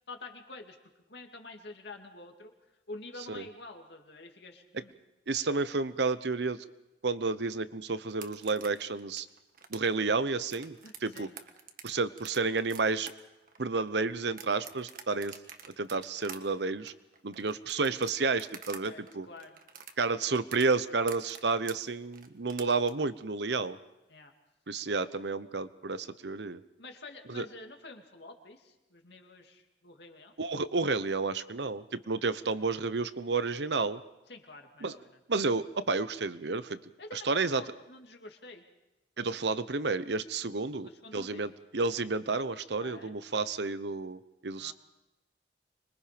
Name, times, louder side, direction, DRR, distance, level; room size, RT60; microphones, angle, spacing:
voice 1, 0.1-0.8 1.1-2.5 2.9-4.9 10.8-11.4 18.8-19.6 24.1-24.3 26.8-30.3 34.3-35.2 37.0-38.6 40.8-41.5 42.8-43.1 44.6-44.7, left 3 dB, 65° left, 3 dB, 2.5 m, -48 dB
voice 2, 5.3-6.6 7.0-9.3 9.7-10.8 11.0-11.3 11.8-13.1 13.6-15.4 15.8-16.9 17.2-19.3 20.0-23.8 24.7-26.6 27.3-27.5 30.4-34.0 34.8-34.9 35.3-36.8 37.2-37.6 39.2-44.7, right 4 dB, 70° right, 14 dB, 0.9 m, -31 dB
sound 1, 8.1-18.8 19.1-22.9, right 7 dB, 50° right, 1.6 m, -47 dB
25.5 x 22.5 x 5.2 m, 0.98 s
head